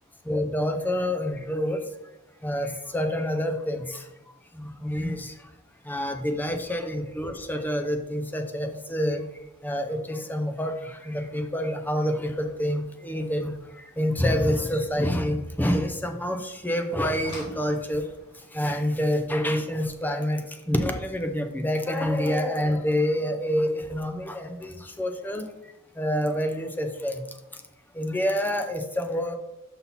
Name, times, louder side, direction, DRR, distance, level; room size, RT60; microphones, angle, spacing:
voice 1, 0.2-1.9 2.4-4.1 4.5-5.5 5.8-9.3 9.6-18.1 18.3-27.2 27.5-27.6 27.9-29.4, equal, 10° left, 6 dB, 0.6 m, -27 dB
sound 1, 17.2-22.0 23.4-23.5 24.1-24.3 24.6-24.7, left 1 dB, 75° left, 2.5 m, -48 dB
5.7 x 5.7 x 4.1 m, 0.92 s
head